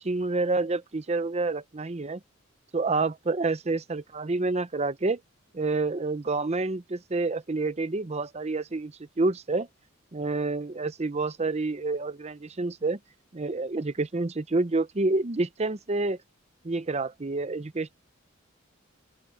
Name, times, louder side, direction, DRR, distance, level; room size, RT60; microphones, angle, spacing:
voice 1, 0.0-2.2 2.7-5.2 5.5-9.7 10.1-13.0 13.3-16.2 16.6-18.0, right 3 dB, 30° right, 0.7 m, -28 dB
open air
head